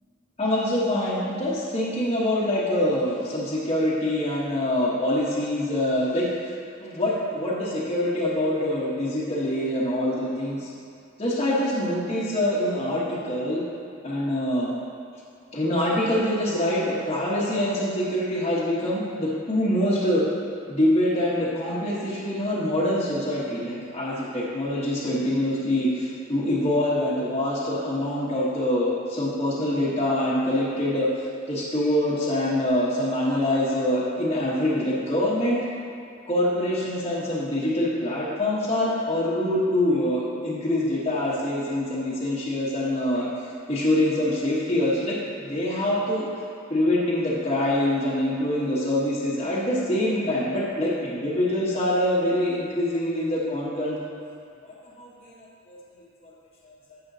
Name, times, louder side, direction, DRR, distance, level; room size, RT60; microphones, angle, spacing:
voice 1, 0.4-6.5 6.8-10.7 11.2-13.6 14.0-14.8 15.5-20.2 20.7-31.1 31.5-35.6 36.3-43.3 43.7-46.3 46.7-54.0 54.6-55.3 55.7-55.8 56.6-57.0, left 1 dB, 30° left, -8 dB, 1.2 m, -25 dB
10.0 x 7.7 x 2.7 m, 2.4 s
head